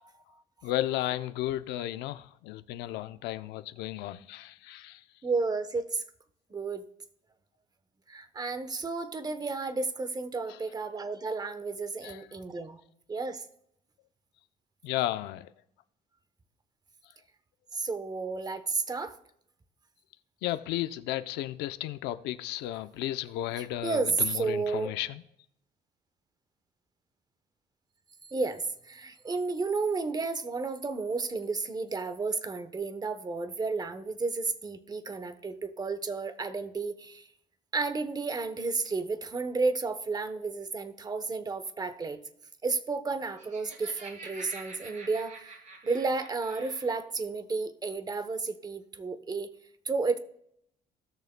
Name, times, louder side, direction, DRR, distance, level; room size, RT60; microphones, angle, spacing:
voice 1, 0.6-5.0 12.0-12.2 14.8-15.5 20.4-25.2, left 14 dB, 90° left, 0.6 m, -34 dB
voice 2, 5.2-6.0 6.5-6.8 8.1-12.8 13.1-13.4 17.7-19.2 23.8-24.9 28.2-37.3 37.7-42.2 42.6-45.6 45.8-49.5 49.8-50.2, right 4 dB, 25° right, 0.9 m, -32 dB
Laughter, 43.1-47.0, right 3 dB, 45° right, 3.2 m, -47 dB
18.0 x 6.6 x 2.2 m
cardioid pair, 110°, 17 cm